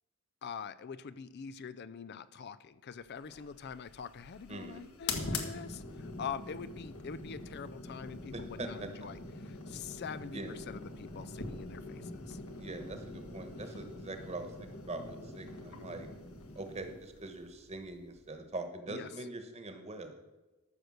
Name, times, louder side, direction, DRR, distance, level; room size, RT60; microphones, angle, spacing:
voice 1, 0.4-12.4 18.9-19.1, left 6 dB, 50° left, 14 dB, 0.4 m, -44 dB
sound 1, 3.2-18.5, left 3 dB, 80° left, 1.6 m, -44 dB
voice 2, 4.5-4.8 8.3-8.9 10.3-10.5 12.6-16.1 16.5-20.2, right 2 dB, 30° right, 6 dB, 1.3 m, -43 dB
13.5 x 6.6 x 6.4 m, 1.1 s
head